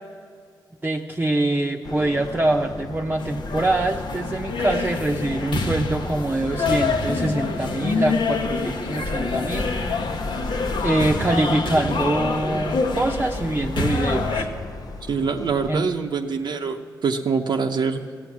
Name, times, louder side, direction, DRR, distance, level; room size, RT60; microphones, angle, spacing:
voice 1, 0.8-9.7 10.8-14.5 15.7-15.8, right 2 dB, 20° right, 1 dB, 0.7 m, -24 dB
sound 1, 1.8-15.7, left 4 dB, 50° left, 0.5 m, -37 dB
sound 2, 3.2-14.4, left 3 dB, 70° left, 1.0 m, -26 dB
voice 2, 15.1-18.0, right 5 dB, 60° right, 2 dB, 0.7 m, -24 dB
14.5 x 8.2 x 7.2 m, 2.1 s
cardioid pair, 55°, 8 cm